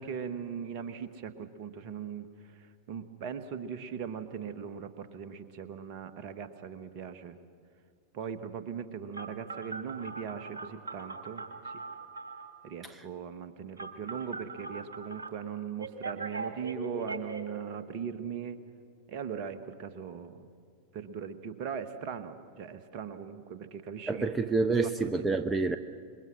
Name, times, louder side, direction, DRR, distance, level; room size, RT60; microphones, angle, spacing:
voice 1, 0.0-2.3 2.5-7.4 8.1-11.8 12.6-18.6 19.1-20.5 20.9-24.3 24.7-25.3, right 7 dB, 45° right, 10 dB, 1.4 m, -39 dB
Telephone, 9.1-12.5 13.8-15.3 15.8-17.4, right 4 dB, 70° right, 2.1 m, -40 dB
voice 2, 24.1-25.8, right 3 dB, 15° right, 9 dB, 0.8 m, -27 dB
27.0 x 22.0 x 6.2 m, 2.2 s
figure-of-eight pair, 90°, 0 cm